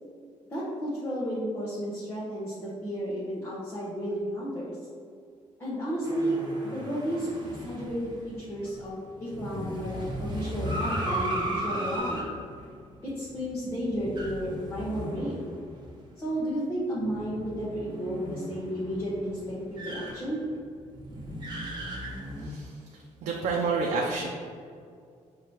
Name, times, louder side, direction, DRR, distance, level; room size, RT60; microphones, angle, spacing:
voice 1, 0.5-4.8 5.6-6.4 6.7-7.3 7.5-12.3 13.0-15.4 16.2-20.4, equal, 20° left, -9 dB, 0.9 m, -32 dB
sound 1, 6.0-16.0 16.3-16.4 17.0-22.5, equal, 35° right, 1.0 m, -36 dB
voice 2, 22.4-22.7 23.2-24.3, right 4 dB, 85° right, -1 dB, 0.5 m, -28 dB
6.0 x 2.8 x 3.1 m, 2.2 s
cardioid pair, 125°, 12 cm